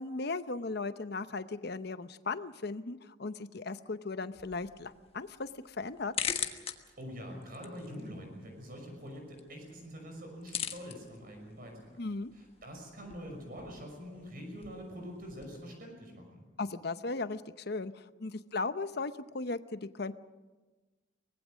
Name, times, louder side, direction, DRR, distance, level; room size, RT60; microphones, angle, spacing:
voice 1, 0.0-6.1 12.0-12.3 16.6-20.1, left 3 dB, 55° left, 12 dB, 0.8 m, -37 dB
sound 1, 4.3-15.6, left 7 dB, 30° left, 1.3 m, -43 dB
voice 2, 7.0-12.0 12.3-16.4, equal, 50° right, 3 dB, 5.8 m, -45 dB
24.0 x 19.5 x 6.3 m, 1.2 s
head